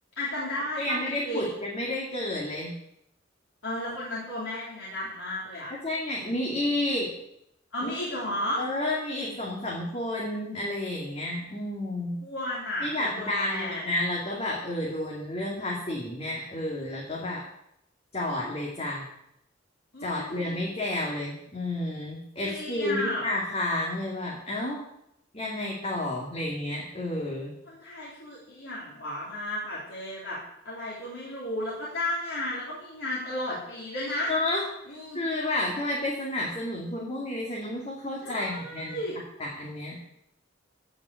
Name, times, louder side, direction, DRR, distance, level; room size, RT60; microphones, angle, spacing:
voice 1, 0.2-1.5 3.6-5.7 6.4-6.5 7.7-8.6 12.2-13.8 19.9-20.6 22.4-23.3 27.7-30.4 30.7-34.3 34.9-35.2 38.2-39.2, left 1 dB, 90° left, -7 dB, 3.6 m, -33 dB
voice 2, 0.8-2.7 5.8-7.1 7.8-7.9 8.6-12.2 12.8-17.4 18.1-19.1 20.0-24.8 25.3-27.5 34.3-34.6 35.1-39.0 39.4-40.0, left 1 dB, 35° left, -4 dB, 2.4 m, -31 dB
14.5 x 5.8 x 8.2 m, 0.78 s
head